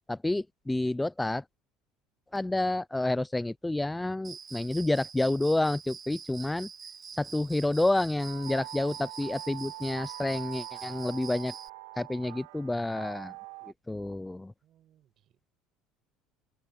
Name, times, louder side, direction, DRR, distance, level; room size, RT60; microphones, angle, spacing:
voice 1, 0.1-1.4 2.3-6.7 7.2-11.6 12.0-13.3 13.6-14.5, left 2 dB, 10° left, 0.4 m, -29 dB
Cricket, 4.2-11.7, right 6 dB, 30° right, 2.0 m, -46 dB
sound 1, 8.2-13.7, right 19 dB, 85° right, 1.0 m, -44 dB
voice 2, 14.6-15.5, right 11 dB, 50° right, 6.1 m, -67 dB
open air
supercardioid pair, 120°, 0 cm